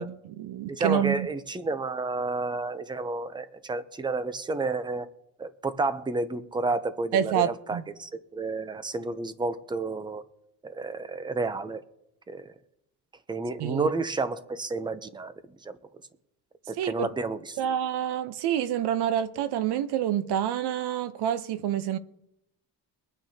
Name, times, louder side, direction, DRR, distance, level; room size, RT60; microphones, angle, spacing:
voice 1, 0.0-1.3 7.1-7.8 13.6-13.9 16.8-17.1 17.6-22.0, right 10 dB, 75° right, 0.9 m, -27 dB
voice 2, 0.7-5.1 5.4-10.2 10.6-11.8 12.3-12.5 13.3-15.8 16.7-17.6, right 3 dB, 10° right, 0.6 m, -31 dB
23.0 x 9.0 x 2.8 m
cardioid pair, 145°, 40 cm